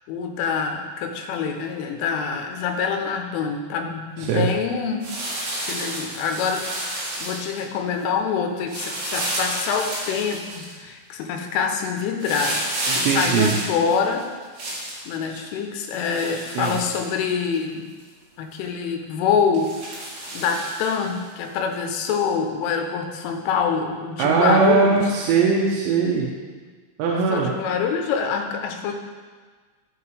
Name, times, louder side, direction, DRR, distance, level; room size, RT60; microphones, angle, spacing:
voice 1, 0.1-5.1 5.7-12.6 12.9-14.3 15.1-17.8 18.4-19.7 20.3-25.1 27.1-29.0, left 6 dB, 90° left, 3 dB, 3.3 m, -25 dB
sound 1, 5.0-7.6 8.7-10.7 12.2-15.0 15.9-17.6 18.0-18.1 18.5-18.6 19.5-21.2 22.0-22.1, right 1 dB, 55° right, 3.0 m, -30 dB
voice 2, 12.9-13.5 15.3-15.4 16.5-16.8 24.2-26.3 27.0-27.5, right 5 dB, 75° right, -3 dB, 2.8 m, -20 dB
14.0 x 5.9 x 3.2 m, 1.5 s
omnidirectional pair, 5.6 m